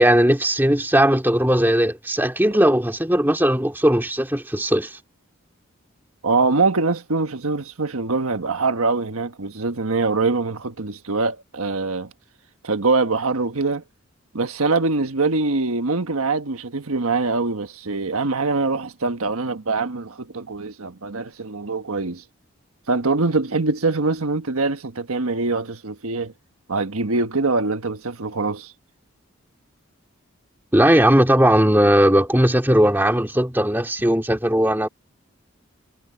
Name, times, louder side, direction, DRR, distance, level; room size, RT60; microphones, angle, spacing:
voice 1, 0.0-5.0 30.7-34.9, right 1 dB, 10° right, 2.2 m, -18 dB
voice 2, 6.2-12.1 12.6-13.8 14.3-22.2 22.9-26.3 26.7-28.7, right 3 dB, 90° right, 1.4 m, -23 dB
head